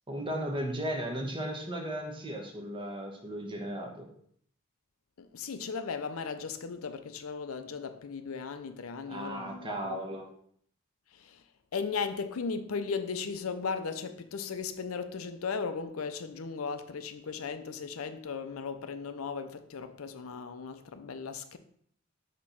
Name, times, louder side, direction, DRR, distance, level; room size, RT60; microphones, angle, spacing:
voice 1, 0.1-4.1 9.1-10.3, right 1 dB, 25° right, 1.1 m, -35 dB
voice 2, 5.2-10.0 11.1-11.4 11.7-21.6, left 5 dB, 90° left, 0.6 m, -36 dB
6.3 x 3.0 x 5.6 m
head